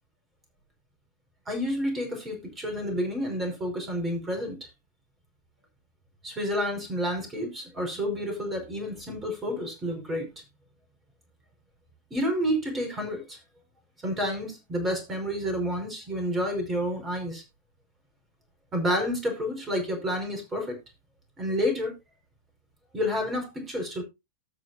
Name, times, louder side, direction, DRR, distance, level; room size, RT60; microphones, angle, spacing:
voice 1, 1.5-4.6 6.2-10.3 12.1-13.4 14.0-17.4 18.7-20.8 21.4-21.9 22.9-24.0, equal, 15° right, 4 dB, 5.0 m, -29 dB
19.0 x 6.4 x 2.7 m, 0.24 s
figure-of-eight pair, 90°, 0 cm